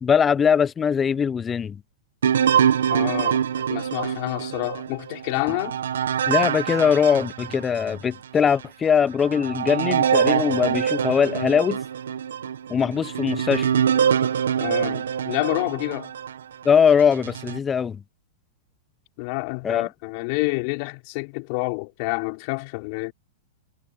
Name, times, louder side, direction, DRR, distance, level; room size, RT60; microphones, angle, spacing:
voice 1, 0.0-1.8 6.3-11.8 12.7-13.7 16.6-18.0 19.6-19.9, left 7 dB, 20° left, 0.7 m, -21 dB
sound 1, 2.2-8.0 8.5-8.6 9.2-16.4 17.0-17.6, right 8 dB, 85° right, 1.7 m, -24 dB
voice 2, 2.9-5.8 14.6-16.1 19.2-23.1, left 31 dB, 50° left, 5.8 m, -28 dB
hypercardioid pair, 125°, 0 cm